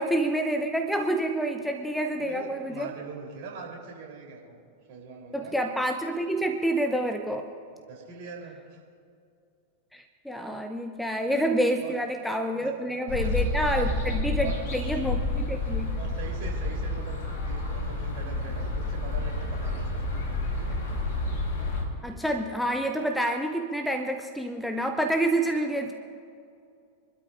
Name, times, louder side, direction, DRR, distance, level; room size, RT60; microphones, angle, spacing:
voice 1, 0.0-2.9 5.3-7.5 9.9-16.0 22.0-25.9, right 1 dB, ahead, 5 dB, 0.8 m, -28 dB
voice 2, 2.2-5.6 7.7-8.8 11.8-11.9 12.5-13.5 13.7-13.9 14.4-14.6 15.6-17.2 17.4-20.8, right 5 dB, 50° right, -2 dB, 3.9 m, -43 dB
sound 1, 13.1-21.8, left 2 dB, 55° left, 3.8 m, -29 dB
27.0 x 12.5 x 2.7 m, 2.4 s
figure-of-eight pair, 90°, 0 cm